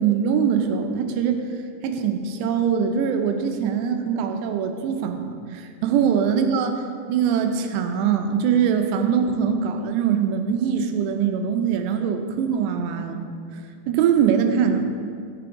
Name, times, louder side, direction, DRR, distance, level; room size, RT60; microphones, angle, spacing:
voice 1, 0.0-1.4 1.8-6.8 7.1-13.2 13.9-14.9, right 7 dB, 85° right, 6 dB, 2.9 m, -22 dB
11.0 x 6.8 x 4.9 m, 2.2 s
omnidirectional pair, 4.9 m